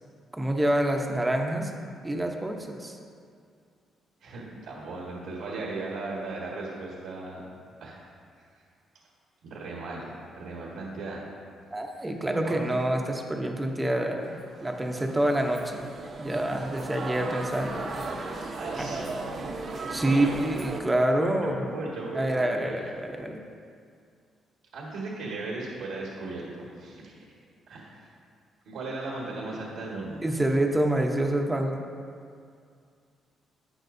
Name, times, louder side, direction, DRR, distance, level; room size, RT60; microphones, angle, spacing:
voice 1, 0.3-1.7 2.0-3.0 11.7-14.3 14.6-15.9 16.2-18.0 18.3-18.5 19.9-21.6 22.1-23.4 30.2-31.7, right 1 dB, 10° right, 2 dB, 0.8 m, -27 dB
voice 2, 4.2-7.5 7.8-8.0 9.4-11.2 11.8-12.6 18.5-20.3 21.1-22.9 24.7-27.2 27.7-28.1 28.6-30.2, right 2 dB, 85° right, -4 dB, 1.6 m, -37 dB
sound 1, 14.2-20.8, right 3 dB, 40° right, 0.8 m, -36 dB
12.0 x 8.9 x 2.7 m, 2.3 s
cardioid pair, 135°, 0 cm